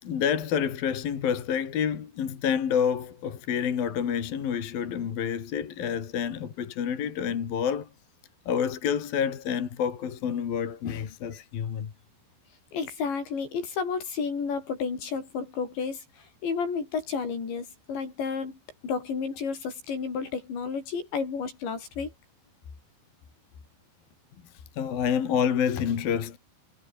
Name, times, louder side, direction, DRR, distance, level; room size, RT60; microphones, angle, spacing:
voice 1, 0.0-7.9 8.5-11.9 24.7-26.4, left 8 dB, 55° left, 4.3 m, -28 dB
voice 2, 12.7-22.1, left 5 dB, 75° left, 8.4 m, -32 dB
omnidirectional pair, 5.2 m